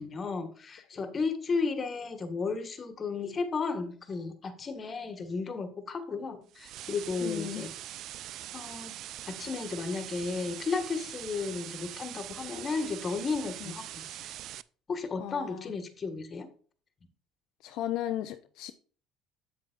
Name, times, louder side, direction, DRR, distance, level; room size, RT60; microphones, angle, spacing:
voice 1, 0.0-7.7 8.5-9.0 9.3-14.3 14.9-16.5, left 4 dB, 35° left, 1.6 m, -34 dB
sound 1, 6.5-14.6, right 13 dB, 65° right, 0.3 m, -42 dB
voice 2, 7.2-7.7 13.6-13.7 15.2-15.7 17.6-18.7, left 12 dB, 70° left, 0.6 m, -35 dB
8.2 x 7.7 x 2.5 m
supercardioid pair, 80°, 0 cm